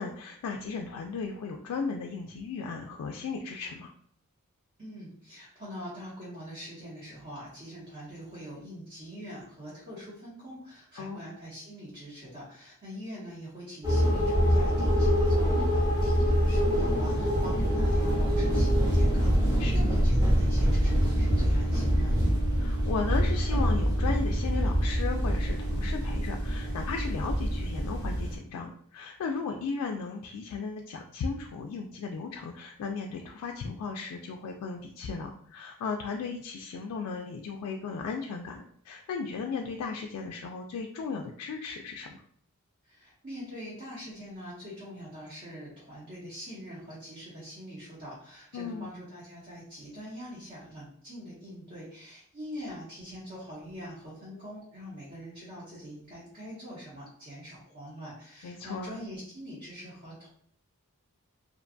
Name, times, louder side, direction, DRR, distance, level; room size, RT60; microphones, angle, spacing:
voice 1, 0.0-3.9 11.0-11.3 19.6-19.9 22.6-42.2 48.5-48.9 58.4-59.0, left 5 dB, 85° left, 2 dB, 0.3 m, -36 dB
voice 2, 4.8-22.1 42.8-60.3, equal, 40° right, -8 dB, 0.9 m, -43 dB
sound 1, 13.8-28.4, equal, 15° right, 0.6 m, -25 dB
2.5 x 2.2 x 2.5 m, 0.62 s
head